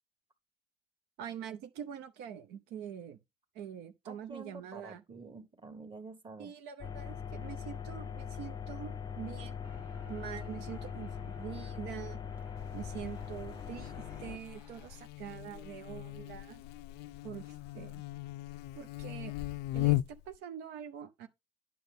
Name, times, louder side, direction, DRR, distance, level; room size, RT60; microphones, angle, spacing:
voice 1, 1.2-3.2 3.5-5.0 6.4-9.7 10.1-12.2 12.7-16.6 17.2-18.0 18.7-19.3 19.7-21.3, right 9 dB, 85° right, 0.7 m, -44 dB
voice 2, 4.0-6.5, right 3 dB, 30° right, 1.4 m, -48 dB
sound 1, 6.8-14.4, left 7 dB, 25° left, 0.6 m, -41 dB
sound 2, 9.6-15.0, equal, 10° right, 1.0 m, -58 dB
Buzz, 12.6-20.4, left 18 dB, 85° left, 0.4 m, -38 dB
9.5 x 6.1 x 3.4 m
cardioid pair, 110°, 17 cm